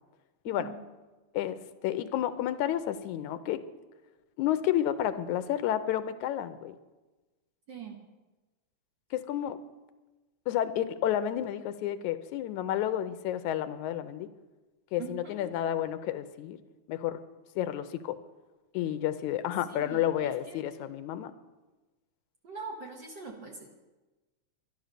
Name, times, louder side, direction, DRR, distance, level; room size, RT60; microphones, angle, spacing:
voice 1, 1.3-3.6 4.4-6.8 9.1-9.6 10.5-14.3 14.9-16.6 16.9-17.2 17.6-18.2 18.7-21.3, left 11 dB, 85° left, 11 dB, 2.1 m, -31 dB
voice 2, 7.7-8.0 15.0-15.5 19.7-20.6 22.4-23.7, right 5 dB, 45° right, 0 dB, 1.7 m, -43 dB
11.5 x 11.5 x 6.7 m, 1.2 s
omnidirectional pair, 3.4 m